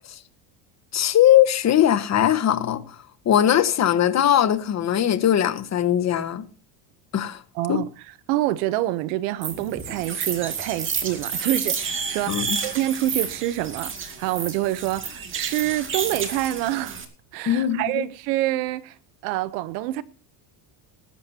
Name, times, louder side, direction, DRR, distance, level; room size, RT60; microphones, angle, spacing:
voice 1, 0.9-2.9 3.2-6.4 7.1-7.4 7.7-7.8 12.3-12.6 17.5-18.1, left 11 dB, 35° left, 1.4 m, -20 dB
voice 2, 7.5-7.9 8.3-17.0 17.3-19.0 19.2-20.0, right 15 dB, 85° right, 1.0 m, -26 dB
sound 1, 9.4-17.0, right 5 dB, 25° right, 2.3 m, -30 dB
20.0 x 11.5 x 2.9 m
cardioid pair, 135°, 47 cm